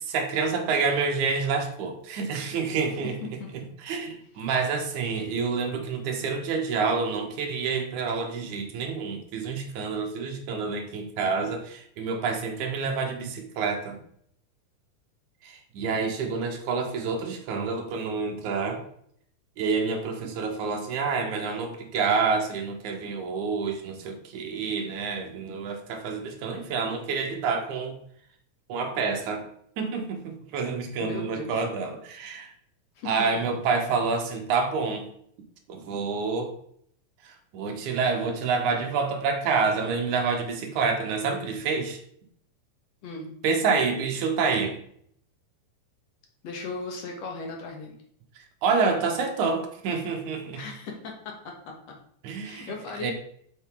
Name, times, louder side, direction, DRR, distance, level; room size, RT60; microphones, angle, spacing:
voice 1, 0.1-3.2 3.8-14.0 15.4-18.8 19.6-28.0 28.7-29.5 29.8-32.5 33.1-35.1 35.7-36.5 37.2-42.0 43.4-44.8 48.4-50.6 52.2-52.7 53.0-53.1, right 5 dB, 65° right, 4 dB, 2.3 m, -28 dB
voice 2, 31.0-31.6 33.0-33.1 43.0-43.3 46.4-47.9 50.5-51.7 52.4-53.1, left 3 dB, 55° left, 0 dB, 2.3 m, -37 dB
7.7 x 6.8 x 3.8 m, 0.65 s
omnidirectional pair, 4.3 m